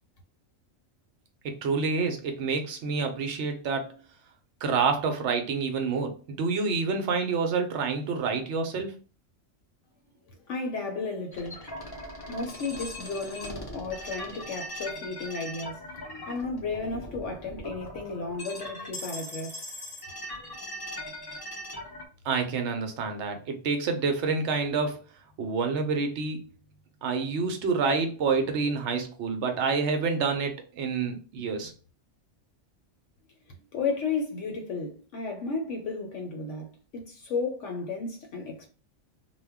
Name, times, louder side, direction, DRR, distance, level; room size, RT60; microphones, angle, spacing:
voice 1, 1.4-4.0 4.6-8.9 22.2-25.0 25.4-26.5 27.0-31.7, right 4 dB, 65° right, 0.8 m, -28 dB
voice 2, 10.3-11.7 12.3-15.9 16.3-19.8 33.5-38.7, left 4 dB, 70° left, 0.9 m, -33 dB
sound 1, 11.3-22.1, left 1 dB, 40° left, 0.3 m, -40 dB
2.2 x 2.1 x 3.4 m
omnidirectional pair, 1.4 m